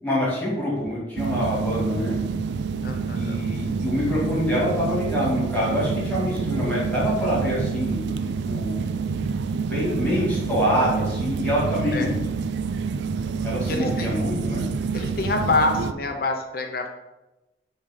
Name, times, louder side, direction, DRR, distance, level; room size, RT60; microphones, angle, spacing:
voice 1, 0.0-2.2 3.2-8.1 8.5-8.7 9.7-12.1 13.4-14.6, equal, 10° left, -7 dB, 2.2 m, -25 dB
sound 1, 1.2-15.9, right 5 dB, 70° right, 0.4 m, -27 dB
voice 2, 2.8-3.4 11.9-12.1 13.7-14.1 14.9-16.9, left 2 dB, 55° left, 4 dB, 0.7 m, -26 dB
7.3 x 3.3 x 5.2 m, 0.99 s
head